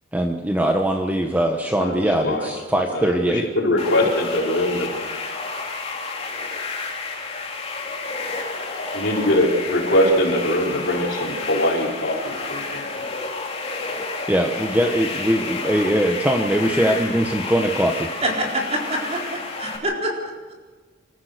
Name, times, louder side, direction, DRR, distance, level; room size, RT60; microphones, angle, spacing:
voice 1, 0.1-3.5 4.0-4.1 14.3-18.1, right 1 dB, 10° right, 3 dB, 1.1 m, -21 dB
voice 2, 3.6-4.9 8.9-13.0, left 1 dB, 70° left, -1 dB, 4.4 m, -21 dB
sound 1, 3.8-19.8, left 3 dB, 35° left, 3.0 m, -30 dB
voice 3, 18.2-20.2, right 1 dB, 35° right, 0 dB, 4.2 m, -26 dB
27.0 x 14.5 x 6.7 m, 1.4 s
head